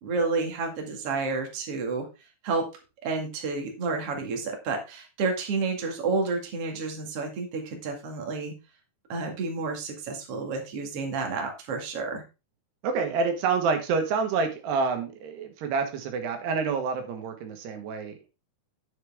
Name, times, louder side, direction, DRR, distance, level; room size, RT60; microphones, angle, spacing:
voice 1, 0.0-2.1 2.4-2.6 3.0-8.5 9.1-12.2, right 4 dB, 45° right, 2 dB, 2.6 m, -30 dB
voice 2, 12.8-18.3, right 5 dB, 85° right, 6 dB, 3.5 m, -28 dB
9.8 x 7.6 x 3.5 m, 0.29 s
omnidirectional pair, 4.6 m